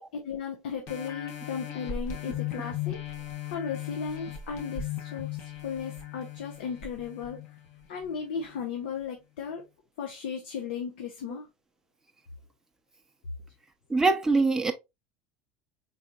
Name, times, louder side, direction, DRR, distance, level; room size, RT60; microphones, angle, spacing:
voice 1, 0.0-3.0 3.5-7.4 7.9-9.6 10.0-11.5, left 6 dB, 85° left, 0.9 m, -36 dB
sound 1, 0.9-8.1 8.6-8.7, left 9 dB, 55° left, 1.3 m, -37 dB
voice 2, 13.9-14.7, right 3 dB, 10° right, 0.6 m, -23 dB
4.1 x 4.0 x 2.4 m
supercardioid pair, 105°, 6 cm